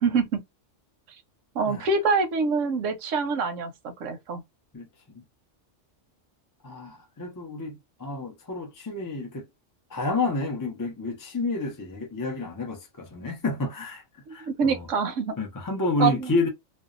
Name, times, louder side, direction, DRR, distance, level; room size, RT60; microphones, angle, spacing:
voice 1, 0.0-0.4 1.5-3.7 4.0-4.4 14.3-15.3 16.0-16.2, right 4 dB, 90° right, 1.0 m, -25 dB
voice 2, 4.7-5.2 6.6-9.5 9.9-14.9 15.4-16.5, left 2 dB, 30° left, 0.4 m, -30 dB
2.6 x 2.1 x 2.4 m
omnidirectional pair, 1.2 m